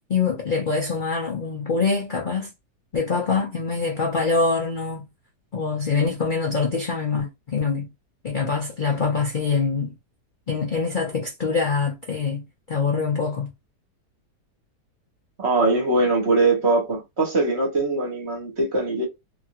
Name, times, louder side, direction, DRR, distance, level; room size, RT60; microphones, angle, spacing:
voice 1, 0.1-2.5 2.9-5.0 5.5-7.9 8.2-9.9 10.5-13.5, left 4 dB, 70° left, 0.4 m, -24 dB
voice 2, 15.4-19.0, right 3 dB, 45° right, 1.1 m, -21 dB
2.9 x 2.6 x 2.8 m
omnidirectional pair, 1.9 m